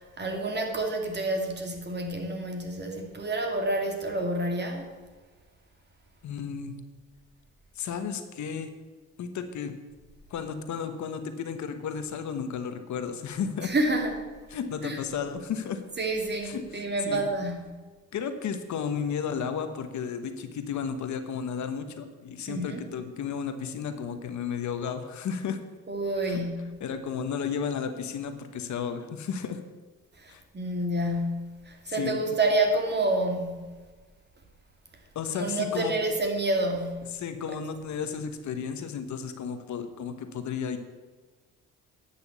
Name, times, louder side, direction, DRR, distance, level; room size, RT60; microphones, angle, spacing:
voice 1, 0.0-4.9 13.6-14.2 14.8-15.0 16.0-17.8 22.5-22.8 25.9-26.8 30.2-33.8 35.3-37.2, right 2 dB, 35° right, 3 dB, 2.4 m, -29 dB
voice 2, 6.2-6.8 7.7-8.7 9.2-9.8 10.3-13.7 14.5-15.8 16.4-17.3 18.1-25.6 26.3-26.4 26.8-29.6 30.3-30.4 31.9-32.4 35.1-35.9 37.1-40.8, left 7 dB, 70° left, 8 dB, 1.2 m, -33 dB
10.0 x 6.3 x 8.3 m, 1.3 s
cardioid pair, 90°, 30 cm